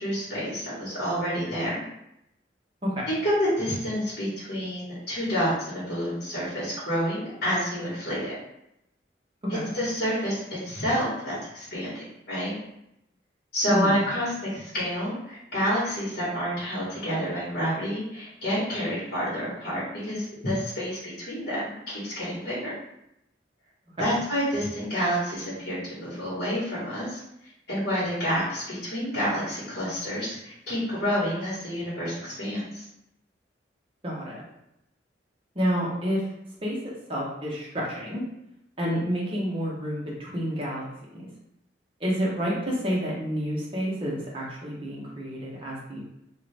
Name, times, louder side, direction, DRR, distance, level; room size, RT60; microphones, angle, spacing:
voice 1, 0.0-1.8 3.1-8.4 9.5-12.5 13.5-22.7 24.0-27.2 27.7-32.9, equal, 60° left, -9 dB, 1.3 m, -29 dB
voice 2, 34.0-34.4 35.5-36.2 36.6-36.8 37.1-38.2 38.8-40.9 41.1-41.2 42.0-46.0, equal, 30° right, -5 dB, 0.9 m, -29 dB
2.7 x 2.5 x 3.3 m, 0.82 s
head